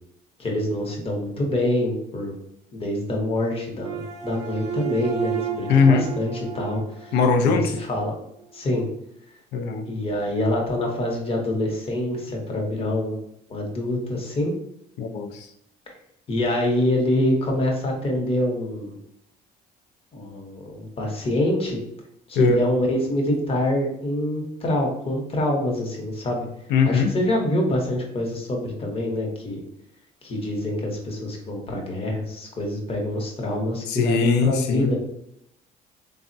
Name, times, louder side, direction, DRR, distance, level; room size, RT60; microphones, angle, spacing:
voice 1, 0.4-2.3 2.7-7.2 7.4-8.1 8.5-8.8 9.9-13.2 13.5-14.5 16.3-19.0 20.1-21.8 22.3-26.5 26.9-29.6 30.2-35.0, left 1 dB, 35° left, 0 dB, 0.8 m, -25 dB
sound 1, 3.8-8.1, right 9 dB, 40° right, 0.7 m, -32 dB
voice 2, 5.7-6.1 7.1-7.7 9.5-9.9 15.0-15.5 22.4-22.6 26.7-27.1 33.9-35.0, left 5 dB, 85° left, 7 dB, 0.4 m, -20 dB
3.4 x 2.0 x 2.6 m, 0.75 s
cardioid pair, 110°, 17 cm